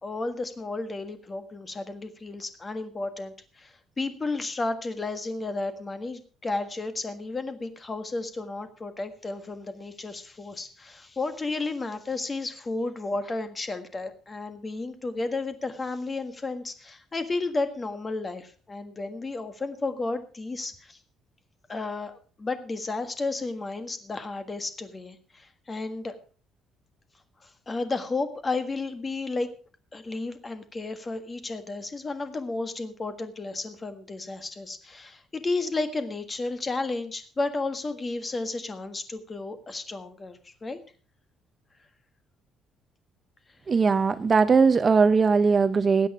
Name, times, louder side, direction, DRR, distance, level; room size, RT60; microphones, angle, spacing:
voice 1, 0.0-21.0 21.7-26.2 27.4-29.5 29.9-40.8, left 3 dB, 20° left, 9 dB, 1.6 m, -32 dB
voice 2, 43.7-46.1, right 5 dB, 25° right, 12 dB, 0.5 m, -20 dB
19.5 x 8.4 x 4.8 m, 0.39 s
cardioid pair, 155°, 0 cm